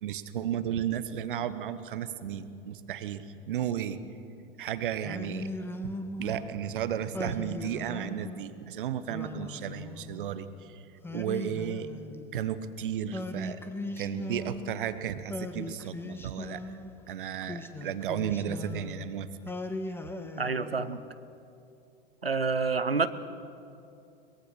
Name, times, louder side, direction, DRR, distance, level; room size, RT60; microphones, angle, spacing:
voice 1, 0.0-4.0 4.6-5.5 5.8-5.9 6.2-10.8 11.1-11.9 12.3-13.6 14.0-16.6 17.1-19.3, right 9 dB, 60° right, 12 dB, 1.3 m, -34 dB
Singing, 5.0-6.5 7.1-8.5 9.1-10.4 11.0-12.6 13.1-14.9 15.3-16.9 17.4-19.1 19.5-21.1, left 1 dB, 10° left, 1.4 m, -39 dB
voice 2, 20.4-21.0 22.2-23.1, right 4 dB, 85° right, 13 dB, 0.9 m, -28 dB
23.5 x 21.0 x 6.5 m, 2.7 s
figure-of-eight pair, 85°, 29 cm